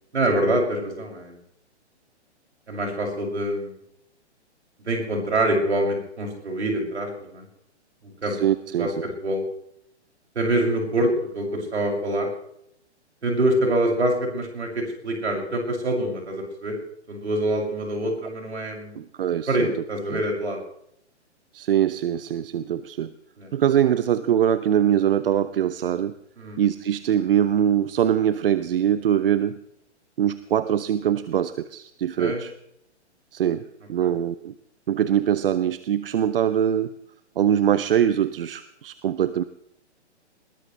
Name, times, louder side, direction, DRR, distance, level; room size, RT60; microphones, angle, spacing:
voice 1, 0.1-1.4 2.7-3.8 4.8-7.4 8.0-8.4 8.8-9.4 10.3-12.3 13.2-16.7 17.1-19.0 19.5-20.6 23.4-23.5 26.4-26.6 32.2-32.4 34.0-34.1, right 1 dB, 70° right, 0 dB, 6.8 m, -25 dB
voice 2, 8.3-9.1 18.9-19.7 20.1-20.2 21.5-23.1 23.5-26.1 26.6-29.6 30.2-32.5 33.3-33.6 33.9-34.5 34.9-36.9 37.4-39.4, right 10 dB, 50° right, 14 dB, 0.9 m, -23 dB
21.0 x 19.5 x 3.3 m, 0.72 s
figure-of-eight pair, 120°, 35 cm